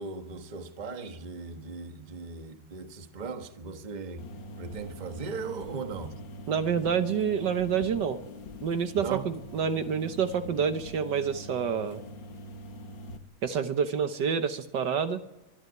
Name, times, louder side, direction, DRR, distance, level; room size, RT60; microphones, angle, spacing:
voice 1, 0.0-4.3 4.6-6.1 8.9-9.3, right 4 dB, 25° right, 1.2 m, -38 dB
sound 1, 4.2-13.2, left 1 dB, 65° left, 2.3 m, -43 dB
voice 2, 6.5-8.2 8.6-12.0 13.4-15.2, right 7 dB, 65° right, 1.6 m, -28 dB
24.0 x 12.5 x 9.4 m
omnidirectional pair, 2.2 m